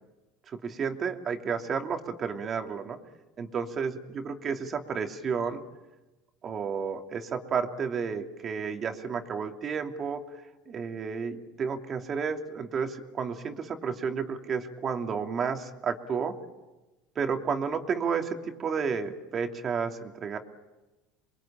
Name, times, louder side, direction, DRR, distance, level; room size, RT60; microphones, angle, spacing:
voice 1, 0.5-3.0 3.4-5.6 6.4-10.2 10.7-16.3 17.1-20.4, right 6 dB, 35° right, 4 dB, 2.9 m, -31 dB
28.0 x 22.5 x 8.9 m, 1.1 s
supercardioid pair, 110°, 0 cm